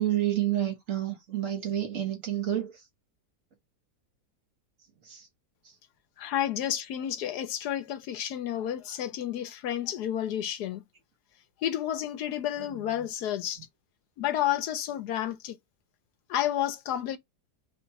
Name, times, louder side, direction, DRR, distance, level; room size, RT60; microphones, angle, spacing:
voice 1, 0.0-2.7 5.0-5.3, right 12 dB, 55° right, 1.3 m, -29 dB
voice 2, 6.2-10.8 11.6-13.6 14.2-15.6 16.3-17.2, left 11 dB, 75° left, 1.2 m, -31 dB
3.2 x 2.9 x 4.5 m
omnidirectional pair, 1.8 m